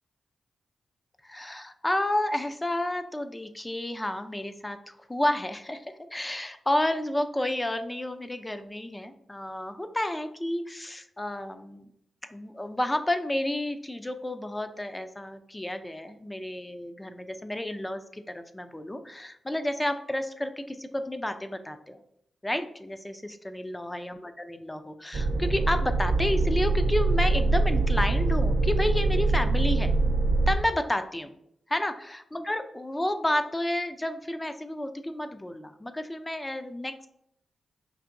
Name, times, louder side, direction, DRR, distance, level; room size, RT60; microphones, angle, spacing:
voice 1, 1.2-5.9 6.1-11.9 12.3-22.0 22.4-29.9 30.5-31.3 31.7-37.1, left 1 dB, 20° left, 8 dB, 0.4 m, -31 dB
sound 1, 25.1-30.6, right 2 dB, 60° right, 0.4 m, -24 dB
4.6 x 2.7 x 2.5 m, 0.73 s
cardioid pair, 50°, 0 cm